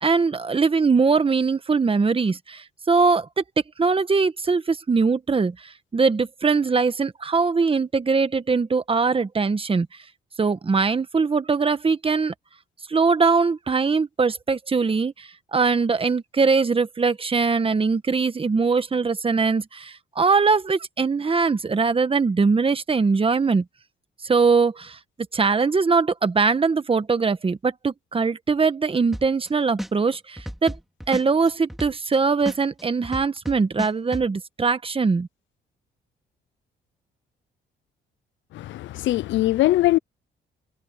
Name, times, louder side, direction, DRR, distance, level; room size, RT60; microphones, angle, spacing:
voice 1, 0.0-3.4 3.8-9.9 10.4-12.3 12.9-23.6 24.2-25.0 25.3-30.7 31.1-35.3, right 4 dB, 25° right, 1.4 m, -21 dB
sound 1, 29.1-29.5 29.8-32.2 32.5-34.3, equal, ahead, 2.3 m, -33 dB
voice 2, 38.5-40.0, left 16 dB, 70° left, 0.5 m, -21 dB
cardioid pair, 90°, 20 cm